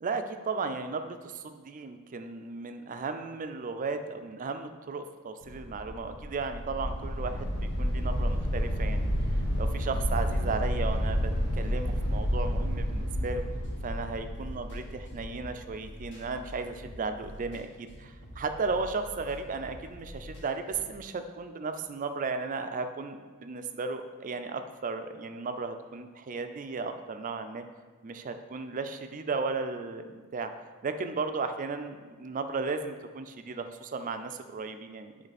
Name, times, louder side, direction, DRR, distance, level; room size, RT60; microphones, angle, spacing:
voice 1, 0.0-9.1 9.6-13.4 13.8-27.6 28.0-30.5 30.8-35.1, right 4 dB, 35° right, 8 dB, 0.4 m, -35 dB
sound 1, 5.4-15.4, equal, 90° left, 1.4 m, -30 dB
sound 2, 13.5-20.9, equal, 55° left, 1.2 m, -47 dB
8.9 x 3.3 x 4.1 m, 1.5 s
head